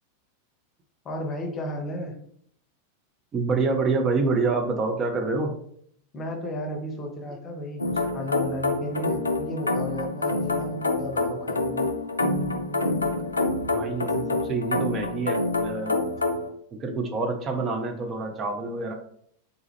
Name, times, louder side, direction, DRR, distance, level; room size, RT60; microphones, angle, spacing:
voice 1, 1.0-2.2 6.1-11.9, left 1 dB, 25° left, 2 dB, 0.8 m, -33 dB
voice 2, 3.3-5.5 13.7-16.0 16.7-18.9, right 3 dB, 25° right, 3 dB, 0.5 m, -27 dB
sound 1, 7.8-16.5, left 2 dB, 80° left, 0.4 m, -27 dB
3.9 x 2.4 x 3.1 m, 0.66 s
figure-of-eight pair, 90°, 0 cm